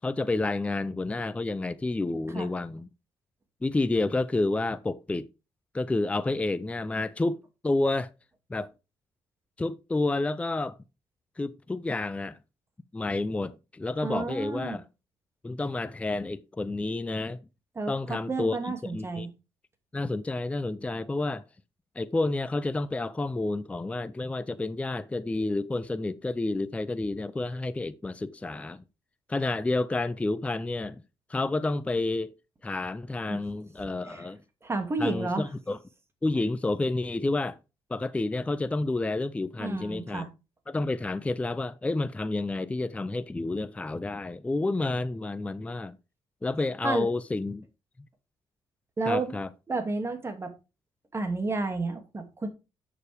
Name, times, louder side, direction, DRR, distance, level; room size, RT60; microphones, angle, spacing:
voice 1, 0.0-2.9 3.6-5.3 5.7-8.1 8.5-8.7 9.6-10.8 11.4-12.4 12.9-14.8 15.4-17.4 17.9-19.3 19.9-21.4 22.0-28.8 29.3-31.0 31.3-32.3 32.6-34.4 35.0-35.8 36.2-37.6 37.9-40.3 40.7-46.0 46.4-47.6 49.1-49.5, left 2 dB, 15° left, 0.5 m, -30 dB
voice 2, 14.0-14.8 17.8-19.3 33.3-33.4 34.0-34.3 34.6-35.5 39.6-40.3 46.8-47.1 49.0-49.4 49.7-50.5 51.1-52.5, right 3 dB, 25° right, 2.4 m, -31 dB
11.0 x 6.9 x 3.4 m
cardioid pair, 105°, 10 cm